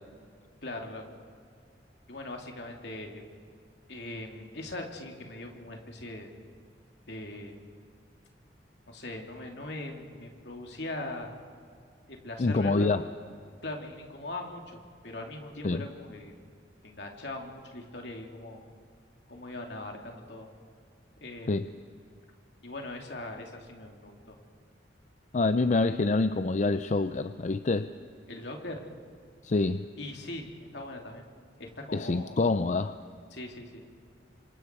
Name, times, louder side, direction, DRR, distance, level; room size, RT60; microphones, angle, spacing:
voice 1, 0.6-1.1 2.1-3.2 3.9-6.3 7.1-7.6 8.9-11.3 12.1-12.9 13.6-16.3 16.8-18.6 19.3-20.5 21.2-21.7 22.6-24.4 28.3-28.8 30.0-31.2 31.6-32.4 33.3-33.8, left 2 dB, 65° left, 2 dB, 2.8 m, -40 dB
voice 2, 12.4-13.0 15.6-15.8 21.5-21.7 25.3-27.9 29.4-29.9 31.9-33.0, left 3 dB, 40° left, 11 dB, 0.5 m, -26 dB
29.0 x 26.0 x 4.6 m, 2.3 s
head